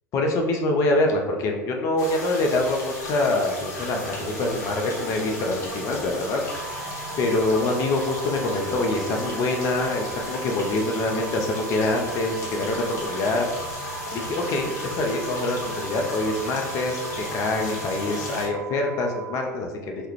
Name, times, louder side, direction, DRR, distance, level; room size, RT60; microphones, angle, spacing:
voice 1, 0.1-6.4 7.2-20.1, left 2 dB, 35° left, 2 dB, 0.4 m, -25 dB
sound 1, 2.0-18.5, left 2 dB, 70° left, 0.7 m, -35 dB
sound 2, 4.1-7.1 7.7-10.6, equal, ahead, 0.8 m, -44 dB
sound 3, 6.5-19.5, right 8 dB, 50° right, 0.4 m, -39 dB
2.3 x 2.0 x 2.9 m, 1.2 s
figure-of-eight pair, 85°, 9 cm